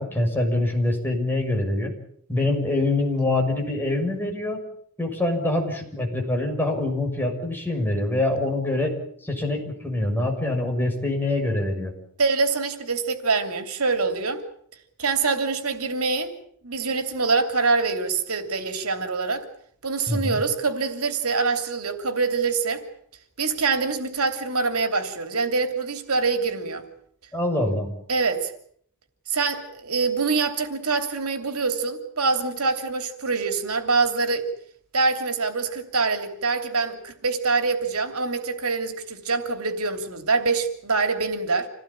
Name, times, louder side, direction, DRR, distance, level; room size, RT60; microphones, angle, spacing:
voice 1, 0.0-1.9 2.3-4.6 5.0-8.9 9.2-11.9 20.1-20.4 27.3-27.9, left 2 dB, 10° left, 6.5 m, -25 dB
voice 2, 12.2-14.4 15.0-16.3 16.6-19.4 19.8-22.8 23.4-26.8 28.1-28.5 29.3-34.5 34.9-41.7, right 4 dB, 85° right, 3.0 m, -25 dB
27.5 x 18.0 x 8.8 m
head